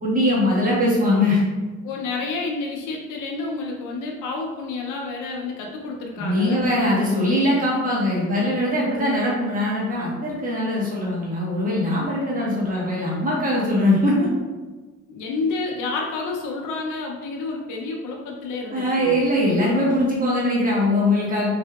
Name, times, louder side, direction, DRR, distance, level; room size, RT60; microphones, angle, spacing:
voice 1, 0.0-1.4 6.2-14.3 18.7-21.5, left 1 dB, 30° right, -6 dB, 1.2 m, -21 dB
voice 2, 1.8-6.7 15.1-19.2, left 3 dB, 85° left, -1 dB, 0.6 m, -29 dB
3.4 x 2.6 x 2.3 m, 1.3 s
cardioid pair, 90°, 30 cm